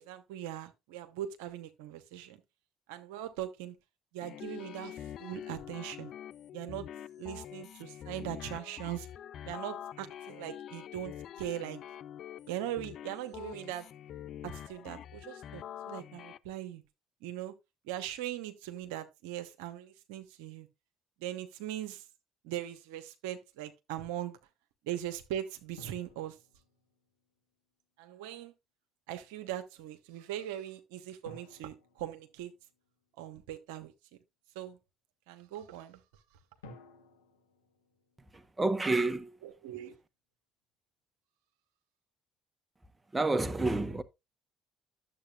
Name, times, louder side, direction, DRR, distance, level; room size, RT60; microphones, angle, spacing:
voice 1, 0.0-2.4 2.9-3.8 4.1-6.1 6.5-6.9 7.2-9.1 9.4-11.8 12.5-13.9 14.4-16.8 17.2-17.5 17.8-20.7 21.2-22.0 22.4-24.4 24.8-26.4 28.0-28.5 29.1-32.5 33.2-33.9 34.5-34.8 35.3-36.0 39.6-40.0, right 12 dB, 80° right, 0.9 m, -40 dB
sound 1, 4.2-16.4, left 10 dB, 60° left, 0.4 m, -45 dB
sound 2, 25.8-27.4 31.2-33.1 36.6-38.9, left 1 dB, 90° left, 1.2 m, -56 dB
voice 2, 38.3-39.4 43.1-44.0, right 2 dB, 20° right, 1.1 m, -29 dB
11.5 x 7.6 x 2.4 m
hypercardioid pair, 55°, 0 cm